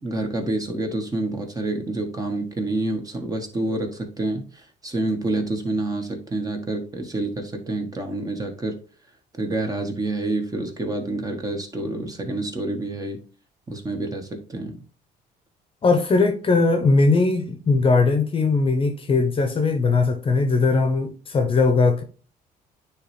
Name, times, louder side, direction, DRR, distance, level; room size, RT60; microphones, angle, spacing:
voice 1, 0.0-8.8 9.3-13.2 13.7-14.8, right 2 dB, 20° right, 1.3 m, -28 dB
voice 2, 15.8-22.0, left 3 dB, 30° left, 0.9 m, -19 dB
9.5 x 3.2 x 3.3 m
cardioid pair, 110°, 17 cm